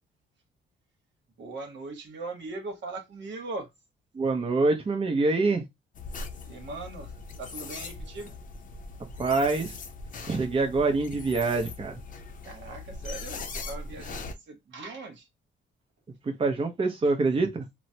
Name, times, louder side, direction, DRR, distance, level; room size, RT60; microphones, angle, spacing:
voice 1, 1.4-3.7 6.4-8.3 12.4-15.3, right 3 dB, 65° right, 1.0 m, -40 dB
voice 2, 4.1-5.6 9.2-9.8 10.2-12.0 16.2-17.7, right 3 dB, 30° right, 0.6 m, -25 dB
sound 1, 5.9-14.3, left 3 dB, 40° left, 0.6 m, -40 dB
3.0 x 2.1 x 2.7 m
cardioid pair, 90°, 20 cm